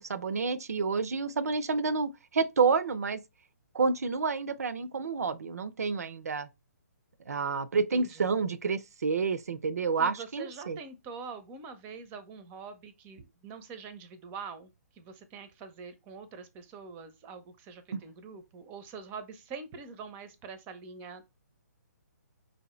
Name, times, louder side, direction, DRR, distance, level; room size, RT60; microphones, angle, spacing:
voice 1, 0.0-3.2 3.7-6.5 7.3-10.8 17.9-18.0, right 4 dB, 65° right, 0.5 m, -29 dB
voice 2, 7.7-8.2 10.0-14.7 15.0-21.2, right 5 dB, 20° right, 0.6 m, -44 dB
5.1 x 2.8 x 3.1 m
figure-of-eight pair, 135°, 9 cm